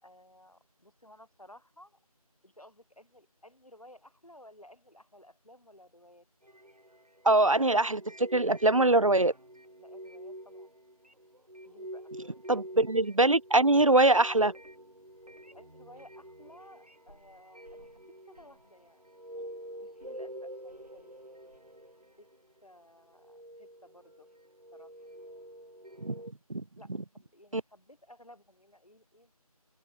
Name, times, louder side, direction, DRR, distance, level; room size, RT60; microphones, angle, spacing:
voice 1, 0.0-2.0 2.4-6.3 9.8-10.7 11.6-12.1 12.7-12.8 15.5-19.2 19.8-21.2 22.2-22.3 22.6-24.3 24.7-24.9 26.7-29.3, left 1 dB, 65° left, 3.7 m, -56 dB
sound 1, 6.4-22.7 23.1-26.3, right 1 dB, 80° right, 4.9 m, -48 dB
voice 2, 7.2-9.3 12.5-14.5 26.0-26.1 26.5-26.6 27.5-27.6, right 2 dB, 55° right, 0.5 m, -23 dB
open air
figure-of-eight pair, 175°, 20 cm